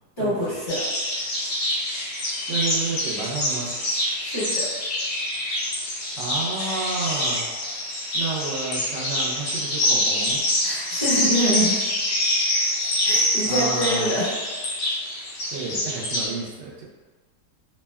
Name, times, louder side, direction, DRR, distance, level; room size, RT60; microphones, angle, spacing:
voice 1, 0.2-0.8 4.2-4.7 10.6-11.8 13.0-14.3, equal, 15° left, -12 dB, 1.1 m, -25 dB
sound 1, 0.7-16.3, left 1 dB, 70° left, 1.3 m, -25 dB
voice 2, 2.5-3.7 6.2-7.5 8.1-10.4 12.9-13.0 13.4-14.1 15.5-16.8, right 4 dB, 85° right, -3 dB, 1.3 m, -31 dB
3.4 x 2.1 x 2.2 m, 1.3 s
omnidirectional pair, 1.8 m